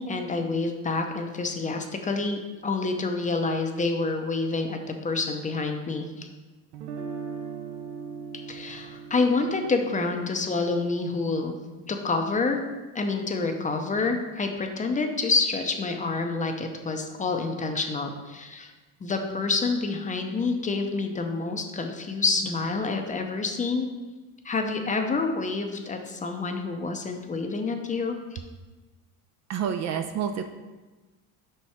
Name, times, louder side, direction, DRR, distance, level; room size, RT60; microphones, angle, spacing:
voice 1, 0.0-6.3 8.5-11.6 11.9-12.6 12.9-18.7 19.0-23.9 24.4-28.4, left 3 dB, 20° left, 4 dB, 0.6 m, -28 dB
Guitar, 6.7-12.7, right 5 dB, 75° right, 0.7 m, -41 dB
voice 2, 29.5-30.4, right 8 dB, 40° right, 7 dB, 0.4 m, -28 dB
5.3 x 4.4 x 4.6 m, 1.2 s
supercardioid pair, 110°, 41 cm